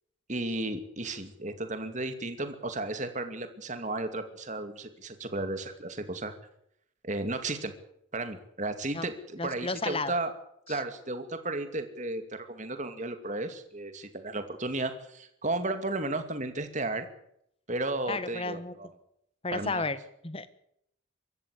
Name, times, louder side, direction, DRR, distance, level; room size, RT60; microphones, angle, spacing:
voice 1, 0.3-6.3 7.0-7.7 8.1-10.3 10.7-17.1 17.7-18.9 19.5-19.8, right 2 dB, 35° right, 8 dB, 2.5 m, -34 dB
voice 2, 9.4-10.1 10.7-10.8 18.1-18.7 19.4-20.0 20.2-20.6, left 3 dB, 30° left, 13 dB, 1.4 m, -33 dB
24.5 x 14.0 x 8.5 m, 0.73 s
head